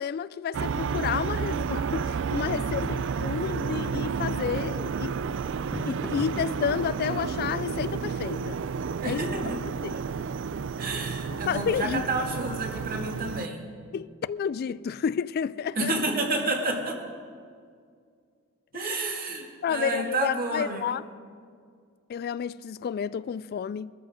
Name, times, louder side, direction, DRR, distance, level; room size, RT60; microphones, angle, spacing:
voice 1, 0.0-5.1 5.8-8.6 9.0-9.3 9.8-9.9 11.3-12.0 13.9-16.0 18.7-19.0 19.6-21.0 22.1-23.9, left 7 dB, 50° left, 0.3 m, -30 dB
sound 1, 0.5-13.5, right 5 dB, 65° right, 0.4 m, -31 dB
sound 2, 1.2-12.0, equal, ahead, 0.8 m, -46 dB
voice 2, 9.0-9.6 9.9-10.0 10.8-13.8 15.8-17.0 18.7-20.9, right 2 dB, 45° right, 2.3 m, -30 dB
20.5 x 13.5 x 5.0 m
head